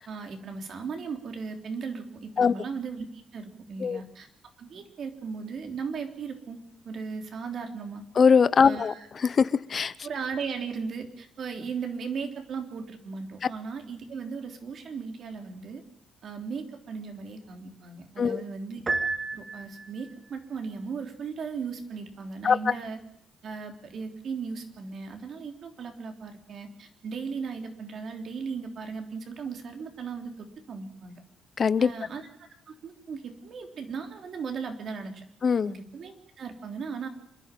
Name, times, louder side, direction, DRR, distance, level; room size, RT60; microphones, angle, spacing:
voice 1, 0.1-4.3 4.6-6.6 6.8-8.0 8.6-9.1 10.0-15.8 16.2-18.8 19.3-23.0 23.4-31.2 31.8-35.2 35.7-37.1, right 5 dB, 60° right, 4 dB, 3.4 m, -37 dB
voice 2, 8.2-9.9 18.2-18.4 22.4-22.7 31.6-31.9 35.4-35.7, left 6 dB, 45° left, 16 dB, 0.7 m, -22 dB
Piano, 18.9-20.1, right 3 dB, 30° right, 2.2 m, -31 dB
27.0 x 11.0 x 9.2 m, 0.74 s
cardioid pair, 90°, 0 cm